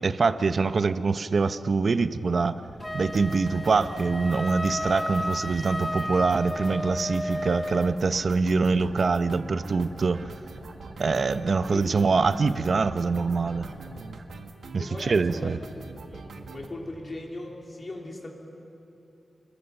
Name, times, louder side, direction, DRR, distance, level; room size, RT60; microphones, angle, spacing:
voice 1, 0.0-2.6 2.9-10.3 11.0-13.7 14.7-15.6, right 4 dB, 50° right, 11 dB, 0.8 m, -24 dB
sound 1, 2.6-14.2, right 2 dB, 25° right, 3.3 m, -50 dB
Wind instrument woodwind instrument, 2.8-8.0, left 1 dB, 10° left, 0.6 m, -33 dB
sound 2, 3.1-16.7, right 3 dB, 85° right, 1.6 m, -43 dB
voice 2, 14.8-15.5 16.1-18.3, left 2 dB, 35° left, 0 dB, 3.3 m, -39 dB
28.0 x 22.0 x 7.1 m, 2.8 s
wide cardioid pair, 145°, 0 cm